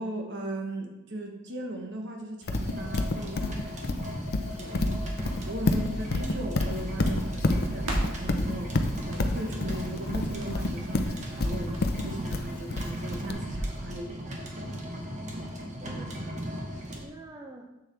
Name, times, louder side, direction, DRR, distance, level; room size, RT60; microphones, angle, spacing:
voice 1, 0.0-3.9 4.5-4.9 5.5-11.8 12.0-14.3, right 1 dB, 60° right, 2 dB, 1.2 m, -38 dB
Livestock farm animals working animals, 2.5-13.3, left 2 dB, 50° left, 0.6 m, -28 dB
sound 1, 2.5-17.0, equal, 35° right, 1.2 m, -37 dB
Crackle, 4.6-13.8, right 1 dB, 85° right, 1.8 m, -38 dB
voice 2, 4.7-6.2 15.0-17.7, right 1 dB, 20° right, 0 dB, 0.6 m, -46 dB
7.3 x 6.9 x 3.4 m, 0.95 s
head